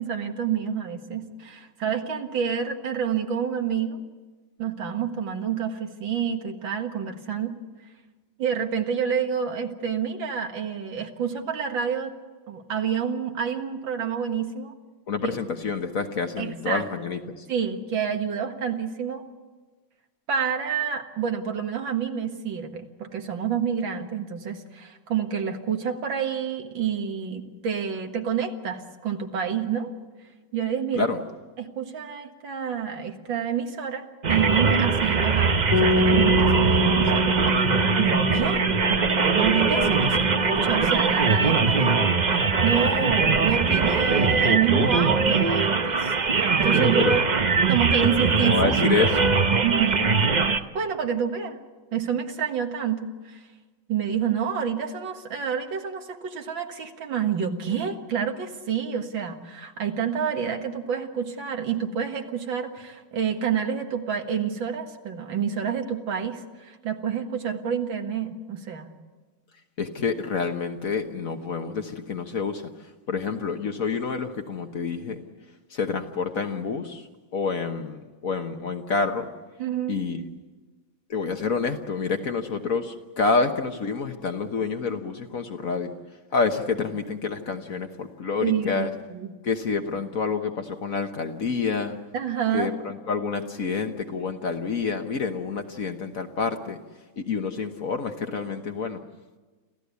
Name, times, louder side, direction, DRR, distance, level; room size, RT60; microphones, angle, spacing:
voice 1, 0.0-4.0 4.6-7.6 8.4-12.1 12.5-14.7 16.4-16.8 17.5-19.2 20.3-29.9 30.5-31.1 31.6-37.5 38.0-38.6 39.4-47.2 47.7-48.8 49.6-50.2 50.7-51.6 51.9-53.5 53.9-68.9 79.6-80.0 88.4-89.3 92.1-92.8, right 7 dB, 80° right, 5 dB, 2.4 m, -28 dB
voice 2, 15.1-17.5 31.0-31.2 46.7-47.2 48.4-49.4 69.8-72.6 73.1-75.2 75.7-77.0 77.3-79.3 79.9-80.2 81.1-85.9 86.3-88.9 89.4-92.0 92.5-96.8 97.2-99.0, left 4 dB, 50° left, 6 dB, 1.5 m, -28 dB
sound 1, 34.2-50.6, right 4 dB, 50° right, 0.5 m, -22 dB
sound 2, 35.7-45.5, equal, 25° left, 1.8 m, -28 dB
27.0 x 15.5 x 8.3 m, 1.3 s
omnidirectional pair, 2.1 m